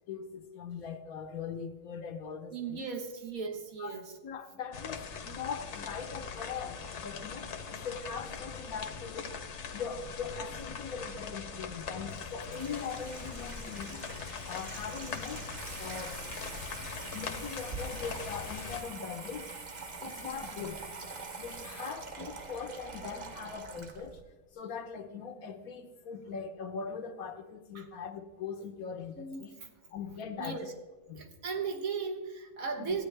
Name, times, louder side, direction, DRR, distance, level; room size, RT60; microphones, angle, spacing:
voice 1, 0.1-2.9 3.8-9.3 9.7-14.1 14.5-15.4 15.8-16.2 17.1-19.6 20.0-20.8 21.4-24.2 24.5-29.5 29.9-30.7 31.1-31.2 32.8-33.0, left 6 dB, 85° left, 5 dB, 1.4 m, -41 dB
voice 2, 2.5-4.1 27.7-27.9 29.2-29.7 30.4-30.7 31.1-33.0, right 5 dB, 75° right, 3 dB, 1.7 m, -37 dB
sound 1, 4.7-18.8, left 6 dB, 60° left, 1.1 m, -41 dB
Water tap faucet / Sink (filling or washing), 12.0-24.2, right 3 dB, 35° right, 0.9 m, -44 dB
14.5 x 9.2 x 3.3 m, 1.2 s
omnidirectional pair, 1.5 m